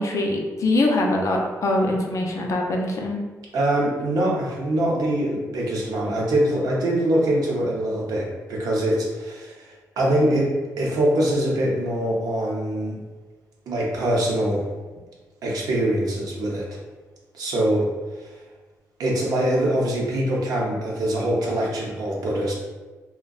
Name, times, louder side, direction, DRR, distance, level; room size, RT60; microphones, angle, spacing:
voice 1, 0.0-3.2, left 2 dB, 55° left, 1 dB, 0.4 m, -23 dB
voice 2, 3.5-9.7 10.0-10.5 10.8-13.0 13.7-14.6 15.4-16.8 17.3-17.9 18.2-18.3 19.0-22.5, right 1 dB, 75° right, -3 dB, 0.6 m, -23 dB
2.5 x 2.1 x 2.3 m, 1.3 s
cardioid pair, 75°, 6 cm